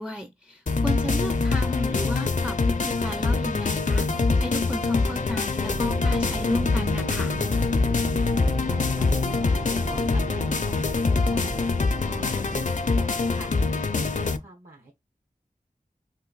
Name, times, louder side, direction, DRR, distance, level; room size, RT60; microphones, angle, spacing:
voice 1, 0.0-4.1 4.4-7.4, left 1 dB, 5° right, 0.4 m, -34 dB
sound 1, 0.7-14.4, left 3 dB, 55° left, 0.4 m, -24 dB
Bass guitar, 4.0-10.2, right 1 dB, 45° right, 1.1 m, -43 dB
sound 2, 5.6-12.6, right 1 dB, 90° right, 1.7 m, -35 dB
voice 2, 8.3-11.6 12.0-14.9, right 1 dB, 70° right, 1.0 m, -46 dB
2.9 x 2.5 x 3.9 m
wide cardioid pair, 50°, 15 cm